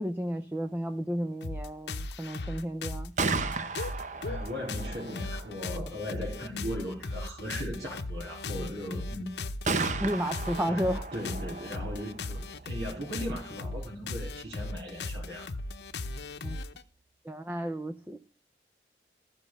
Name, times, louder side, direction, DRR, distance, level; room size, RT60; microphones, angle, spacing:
voice 1, 0.0-3.1 10.0-11.0 16.4-16.6 17.2-18.2, equal, 10° right, 0.6 m, -32 dB
sound 1, 1.4-16.8, left 2 dB, 70° left, 0.8 m, -37 dB
Gunshot gunfire, 2.9-16.7, right 4 dB, 40° right, 0.8 m, -38 dB
voice 2, 4.2-9.3 10.6-15.5, equal, 70° right, 3.8 m, -38 dB
14.0 x 6.0 x 5.3 m
head